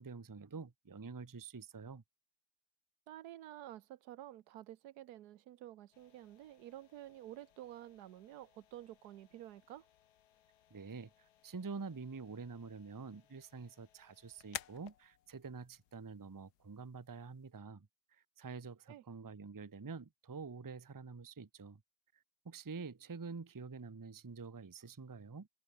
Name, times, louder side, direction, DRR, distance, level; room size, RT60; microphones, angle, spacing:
voice 1, 0.0-2.0 10.7-11.1 11.4-21.8 22.4-25.5, right 4 dB, 35° right, 0.3 m, -47 dB
voice 2, 3.1-9.9 18.9-19.0, right 13 dB, 80° right, 1.3 m, -51 dB
sound 1, 5.9-17.5, left 11 dB, 85° left, 1.5 m, -56 dB
omnidirectional pair, 1.7 m